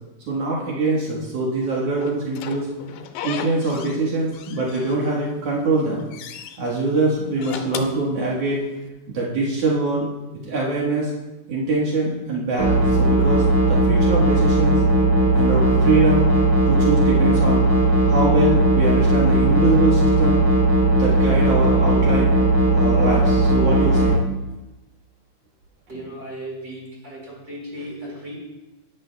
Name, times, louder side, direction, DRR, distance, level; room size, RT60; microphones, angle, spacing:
voice 1, 0.3-2.7 3.2-6.0 6.6-8.6 9.1-10.1 10.4-11.1 11.5-14.8 15.3-16.2 16.7-17.6 18.0-20.4 20.9-22.3 22.7-24.2, right 2 dB, 75° right, -4 dB, 1.4 m, -23 dB
Slam / Squeak, 2.0-4.0 4.3-5.3 5.7-6.6 7.2-8.8, left 9 dB, 80° left, 2.9 m, -35 dB
sound 1, 12.6-24.2, right 1 dB, 20° left, 1.6 m, -17 dB
voice 2, 25.9-28.3, right 1 dB, 20° right, -4 dB, 4.2 m, -36 dB
17.0 x 11.0 x 2.2 m, 1.1 s
omnidirectional pair, 5.1 m